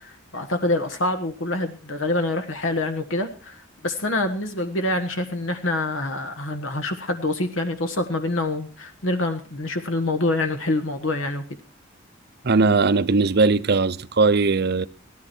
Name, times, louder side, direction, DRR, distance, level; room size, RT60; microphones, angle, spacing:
voice 1, 0.0-11.4, left 2 dB, 80° left, 1.5 m, -26 dB
voice 2, 12.4-14.9, right 3 dB, 55° right, 0.7 m, -19 dB
17.5 x 13.5 x 4.5 m
head